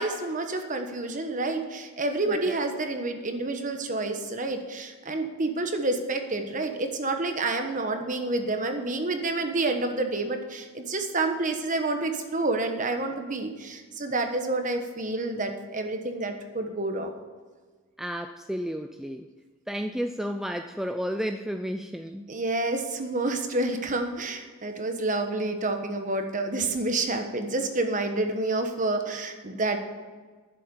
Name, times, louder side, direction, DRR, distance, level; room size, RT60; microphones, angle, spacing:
voice 1, 0.0-17.1 22.3-29.8, right 2 dB, 35° right, 5 dB, 1.2 m, -29 dB
voice 2, 2.3-2.6 18.0-19.2 19.7-22.2, equal, ahead, 6 dB, 0.3 m, -32 dB
11.5 x 7.6 x 7.1 m, 1.4 s
head